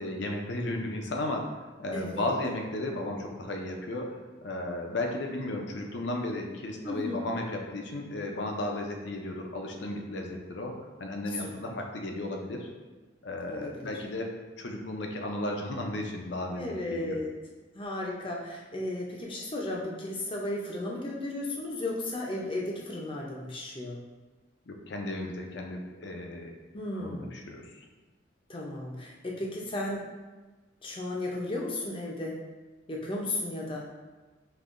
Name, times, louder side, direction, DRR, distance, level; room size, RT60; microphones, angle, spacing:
voice 1, 0.0-1.5 1.8-10.7 11.0-12.7 13.2-17.2 24.7-26.5 26.9-27.6, left 1 dB, 70° left, 2 dB, 0.6 m, -34 dB
voice 2, 1.9-2.3 6.8-7.2 11.3-11.7 13.5-13.9 16.5-17.3 17.7-24.0 26.7-27.3 28.5-30.1 30.8-32.4 32.9-33.9, left 1 dB, 30° left, -2 dB, 0.6 m, -34 dB
5.3 x 2.8 x 2.5 m, 1.3 s
head